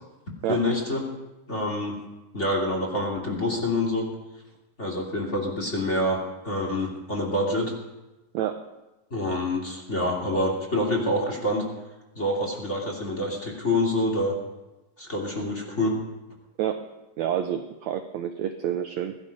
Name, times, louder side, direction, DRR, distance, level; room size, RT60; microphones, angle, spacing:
voice 1, 0.5-1.0 1.5-2.0 2.3-4.1 4.8-6.2 6.4-7.7 9.1-11.6 12.1-14.3 15.0-15.9, left 1 dB, 20° left, 0 dB, 2.7 m, -26 dB
voice 2, 17.2-19.2, right 10 dB, 75° right, 7 dB, 1.7 m, -28 dB
21.0 x 12.0 x 5.4 m, 1.0 s
omnidirectional pair, 4.0 m